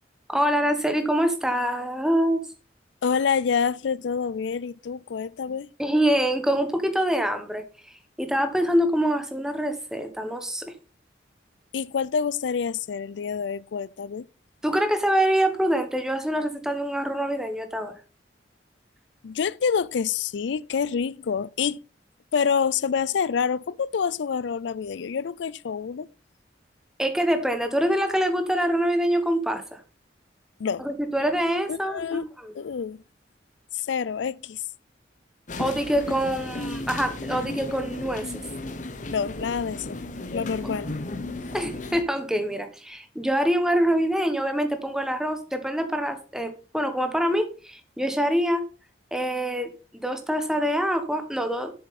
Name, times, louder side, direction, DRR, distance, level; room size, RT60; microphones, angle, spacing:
voice 1, 0.3-2.4 5.8-7.6 8.2-10.7 14.6-17.9 27.0-29.8 30.8-32.5 35.6-38.3 40.6-40.8 41.5-48.6 49.1-49.7 50.0-51.8, equal, 5° right, 1.1 m, -25 dB
voice 2, 3.0-5.7 11.7-14.3 19.2-21.8 22.3-26.1 30.6-30.8 31.7-32.3 32.5-33.0 33.7-34.6 39.1-40.0 40.3-40.9, left 6 dB, 75° left, 0.4 m, -27 dB
sound 1, 35.5-42.0, left 2 dB, 40° left, 0.9 m, -34 dB
7.8 x 7.0 x 4.1 m
head